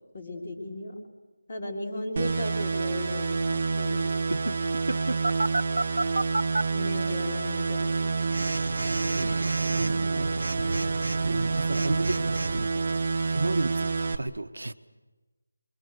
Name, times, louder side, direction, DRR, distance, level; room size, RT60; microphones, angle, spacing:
voice 1, 0.1-0.9 1.5-4.2 6.7-8.2, left 1 dB, 30° left, 2 dB, 3.5 m, -36 dB
sound 1, 2.2-14.2, right 4 dB, 30° right, 0.8 m, -28 dB
voice 2, 4.3-5.2 7.0-7.3 9.1-10.5 11.2-14.7, right 2 dB, 85° right, 8 dB, 1.4 m, -34 dB
Telephone, 5.2-6.6 8.3-12.7, right 2 dB, 70° right, 0.7 m, -30 dB
27.5 x 23.5 x 6.6 m, 1.2 s
figure-of-eight pair, 175°, 0 cm